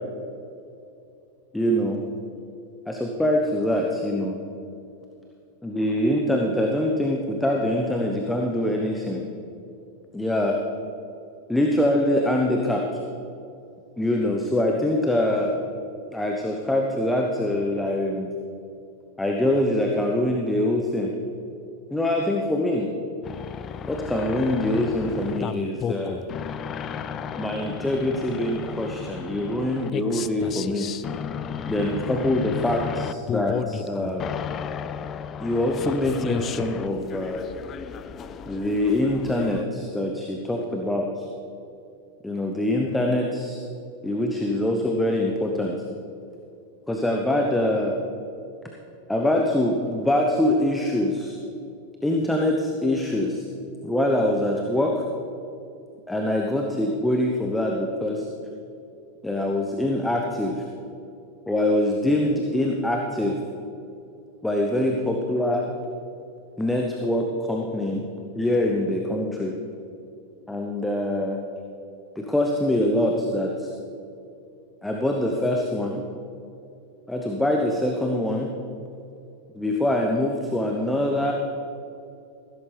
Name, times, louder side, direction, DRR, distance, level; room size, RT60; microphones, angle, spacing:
voice 1, 1.5-2.0 2.9-4.4 5.6-9.2 10.1-10.6 11.5-12.8 14.0-15.5 16.1-18.3 19.2-21.1 21.9-22.9 23.9-26.2 27.3-30.9 31.6-34.3 35.4-37.4 38.5-41.3 42.2-43.6 44.0-45.8 46.9-47.9 49.1-51.4 52.0-53.4 53.8-55.0 56.1-58.3 59.2-60.7 61.5-63.4 64.4-65.7 66.6-68.0 68.4-69.5 70.5-71.4 72.1-73.7 74.8-76.0 77.1-78.5 79.5-81.3, left 1 dB, 5° left, 1 dB, 1.0 m, -24 dB
sound 1, 23.2-39.6, left 8 dB, 30° left, 0.4 m, -33 dB
15.5 x 13.0 x 3.4 m, 2.7 s
figure-of-eight pair, 90°, 0 cm